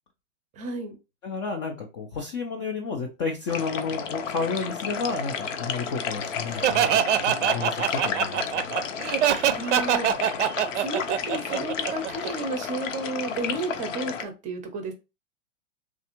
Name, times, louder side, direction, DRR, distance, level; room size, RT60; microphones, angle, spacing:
voice 1, 0.5-1.0 9.6-10.1 10.8-14.9, right 2 dB, 20° right, 7 dB, 0.6 m, -32 dB
voice 2, 1.2-8.6, left 4 dB, 25° left, 1 dB, 0.3 m, -31 dB
sound 1, 3.5-14.2, left 6 dB, 70° left, 0.7 m, -32 dB
Laughter, 6.6-12.3, right 10 dB, 60° right, 0.5 m, -23 dB
3.4 x 2.3 x 2.8 m, 0.27 s
hypercardioid pair, 125°, 39 cm